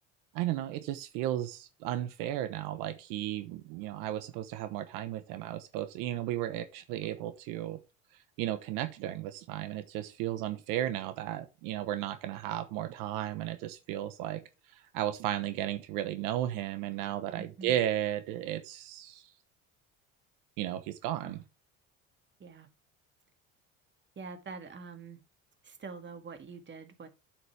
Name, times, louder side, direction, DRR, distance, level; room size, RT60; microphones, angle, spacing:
voice 1, 0.3-7.8 8.4-14.4 14.7-19.3 20.6-21.4, right 13 dB, 80° right, 1.0 m, -34 dB
voice 2, 17.4-17.8 21.2-21.4 22.4-22.7 24.2-25.2 25.6-27.1, right 4 dB, 35° right, 2.0 m, -45 dB
8.3 x 7.6 x 3.3 m
supercardioid pair, 85°, 32 cm